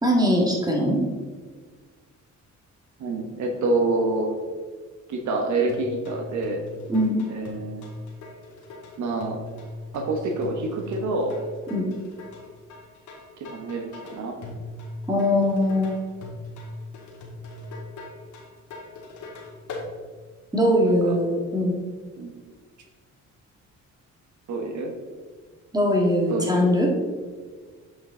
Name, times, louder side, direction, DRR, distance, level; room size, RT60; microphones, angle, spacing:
voice 1, 0.0-1.0 6.9-7.2 11.7-11.9 15.1-15.9 20.5-21.8 25.7-27.0, equal, 15° right, 0 dB, 1.8 m, -21 dB
voice 2, 3.0-4.4 5.1-6.6 7.3-7.8 9.0-9.4 9.9-11.3 13.4-14.4 20.8-21.2 22.2-22.3 24.5-24.9 26.3-26.7, right 2 dB, 70° right, 3 dB, 1.1 m, -27 dB
sound 1, 5.7-19.9, left 2 dB, 75° left, 1.7 m, -40 dB
7.7 x 5.7 x 3.7 m, 1.5 s
cardioid pair, 90°, 30 cm